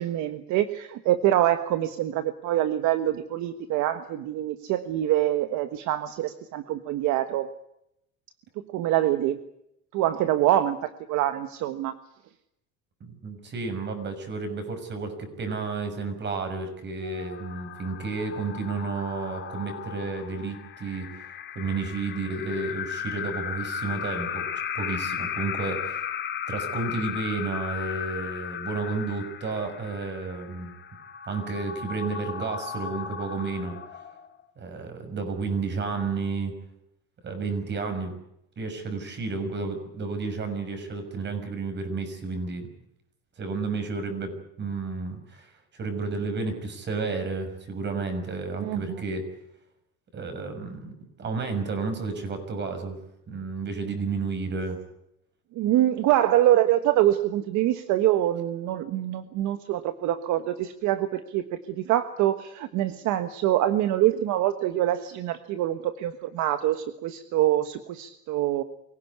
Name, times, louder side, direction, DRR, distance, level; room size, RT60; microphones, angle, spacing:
voice 1, 0.0-7.5 8.7-9.4 9.9-11.9 48.6-49.0 55.5-68.6, right 13 dB, 65° right, 10 dB, 1.4 m, -25 dB
voice 2, 13.0-21.2 21.5-26.0 26.5-30.7 31.3-33.8 34.6-36.5 37.2-38.2 38.6-42.6 43.4-49.2 50.1-53.0 53.3-54.8, right 4 dB, 35° right, 7 dB, 6.3 m, -31 dB
sound 1, 17.0-34.4, left 8 dB, 35° left, 2.8 m, -36 dB
24.5 x 17.0 x 9.7 m, 0.80 s
cardioid pair, 135°, 31 cm